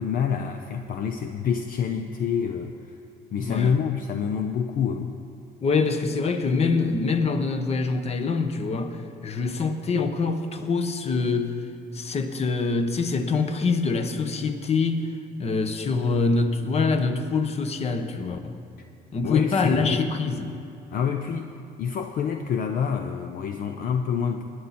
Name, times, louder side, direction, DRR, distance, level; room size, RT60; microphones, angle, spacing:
voice 1, 0.0-3.0 3.3-5.2 19.2-20.1 20.9-24.4, left 7 dB, 55° left, 5 dB, 0.7 m, -27 dB
voice 2, 3.4-3.7 5.6-11.7 11.9-15.1 15.4-18.5 19.1-20.5, left 4 dB, 40° left, 7 dB, 1.1 m, -25 dB
20.5 x 9.5 x 4.3 m, 2.6 s
cardioid pair, 110°, 17 cm